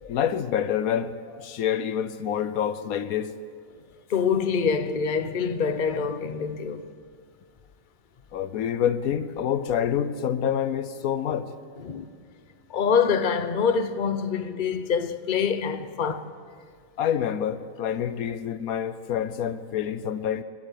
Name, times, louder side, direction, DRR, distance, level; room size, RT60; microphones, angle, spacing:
voice 1, 0.0-3.3 8.3-11.5 17.0-20.4, left 9 dB, 85° left, 1.3 m, -27 dB
voice 2, 4.1-6.9 11.8-12.1 12.7-16.3, left 6 dB, 40° left, 1.0 m, -25 dB
29.5 x 12.0 x 8.4 m
omnidirectional pair, 1.5 m